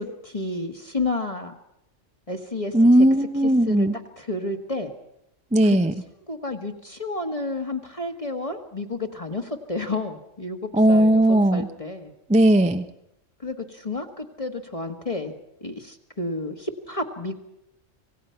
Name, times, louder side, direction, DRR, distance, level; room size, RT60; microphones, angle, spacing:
voice 1, 0.0-1.5 2.3-2.8 3.4-3.9 4.2-4.9 5.6-5.8 6.3-12.1 13.4-15.3 15.6-17.3, left 2 dB, 30° left, 4 dB, 1.5 m, -31 dB
voice 2, 2.7-3.9 5.5-5.9 10.7-11.7 12.3-12.9, right 1 dB, 5° right, 8 dB, 0.6 m, -17 dB
26.5 x 17.5 x 5.8 m, 0.81 s
omnidirectional pair, 1.3 m